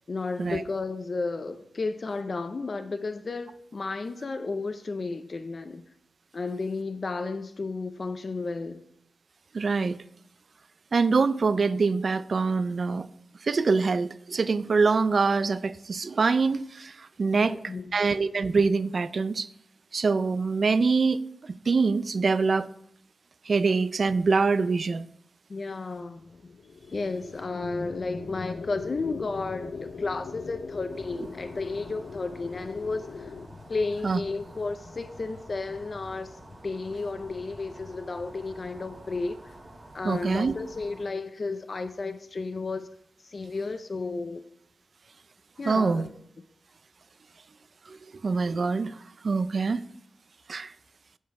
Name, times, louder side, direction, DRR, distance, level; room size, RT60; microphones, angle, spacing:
voice 1, 0.1-5.9 6.3-8.8 17.3-18.0 25.5-26.4 26.9-39.5 39.9-42.9 43.2-44.4 45.6-46.1, left 3 dB, 45° left, 0.5 m, -33 dB
voice 2, 9.5-10.0 10.9-13.1 13.4-17.6 17.9-19.5 19.9-21.2 21.7-22.7 23.5-25.0 34.0-34.2 40.0-40.5 45.6-46.1 47.9-48.0 48.2-49.0 49.2-49.8 50.5-50.7, right 4 dB, 55° right, 0.4 m, -24 dB
sound 1, 26.4-33.5, left 5 dB, 80° left, 0.7 m, -42 dB
sound 2, 30.9-41.0, right 1 dB, 30° right, 2.6 m, -49 dB
8.1 x 7.3 x 4.7 m
wide cardioid pair, 110°, 0 cm